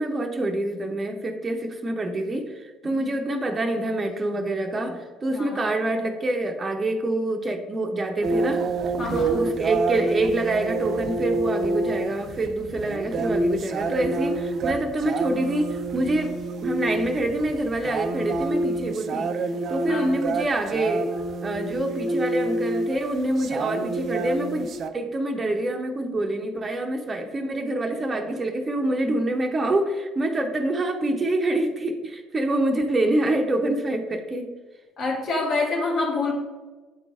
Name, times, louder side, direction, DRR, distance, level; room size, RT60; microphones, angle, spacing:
voice 1, 0.0-8.7 9.1-19.3 19.7-21.1 21.4-34.5, right 1 dB, 30° right, 4 dB, 0.8 m, -26 dB
voice 2, 5.3-5.7 9.0-9.4 19.9-20.2 35.0-36.3, left 3 dB, 50° left, -2 dB, 2.0 m, -27 dB
sound 1, 8.2-24.9, right 2 dB, 50° right, 0.5 m, -28 dB
8.9 x 4.0 x 3.5 m, 1.3 s
hypercardioid pair, 55°, 0 cm